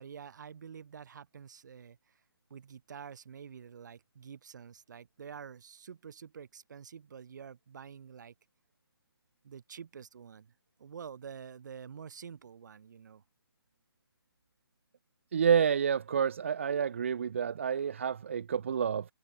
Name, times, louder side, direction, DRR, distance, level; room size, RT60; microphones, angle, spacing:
voice 1, 0.0-2.2 2.5-8.3 9.4-10.5 10.8-13.2, right 7 dB, 45° right, 3.8 m, -48 dB
voice 2, 15.3-19.0, right 7 dB, 30° right, 0.4 m, -29 dB
hypercardioid pair, 165°, 13 cm